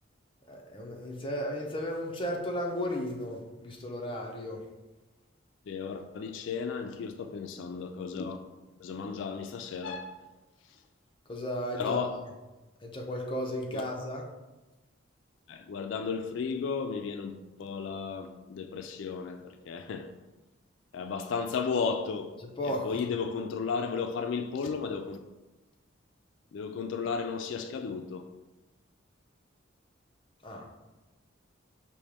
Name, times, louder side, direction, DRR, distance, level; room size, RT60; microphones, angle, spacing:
voice 1, 0.5-4.6 11.3-12.0 12.8-14.2 22.4-23.0 30.4-30.6, equal, 25° left, 0.6 m, -34 dB
voice 2, 5.7-8.4 8.8-10.1 11.8-12.2 13.7-13.8 15.5-20.1 20.9-22.4 22.6-25.2 26.5-28.3, left 5 dB, 65° left, 0.3 m, -34 dB
5.2 x 2.9 x 3.4 m
head